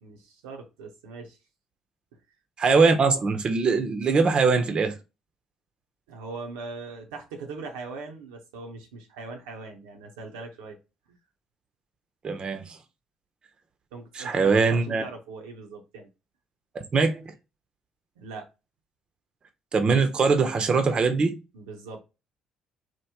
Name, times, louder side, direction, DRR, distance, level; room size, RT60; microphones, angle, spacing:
voice 1, 0.0-1.4 6.1-10.8 11.1-11.2 13.9-16.1 18.2-18.5 21.5-22.0, right 4 dB, 80° right, 0.6 m, -40 dB
voice 2, 2.6-5.0 12.2-12.8 14.1-15.0 16.9-17.3 19.7-21.4, right 4 dB, 45° right, 0.6 m, -22 dB
3.0 x 2.1 x 3.4 m
hypercardioid pair, 55°, 2 cm